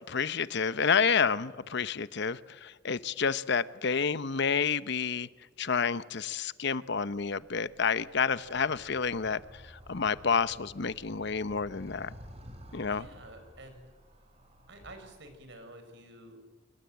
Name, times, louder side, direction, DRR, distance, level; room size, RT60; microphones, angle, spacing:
voice 1, 0.1-5.3 5.6-9.4 9.9-12.1 12.7-13.1, left 6 dB, 65° left, 0.9 m, -29 dB
Animal, 7.1-15.6, equal, 35° right, 4.1 m, -53 dB
voice 2, 12.9-13.9 14.7-16.4, right 1 dB, 65° right, 5.6 m, -50 dB
27.0 x 22.5 x 9.0 m
head